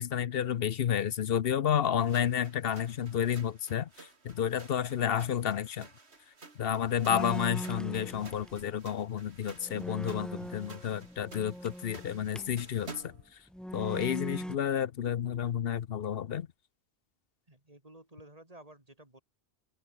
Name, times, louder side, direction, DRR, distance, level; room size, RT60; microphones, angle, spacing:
voice 1, 0.0-5.9 6.6-13.1 13.7-16.5, left 9 dB, 60° left, 0.9 m, -31 dB
sound 1, 2.0-13.3, right 3 dB, 70° right, 2.8 m, -52 dB
sound 2, 7.1-8.7 9.2-9.3 9.6-12.6 13.5-14.6, equal, ahead, 0.5 m, -40 dB
voice 2, 17.5-19.2, right 1 dB, 35° right, 3.6 m, -53 dB
open air
omnidirectional pair, 1.2 m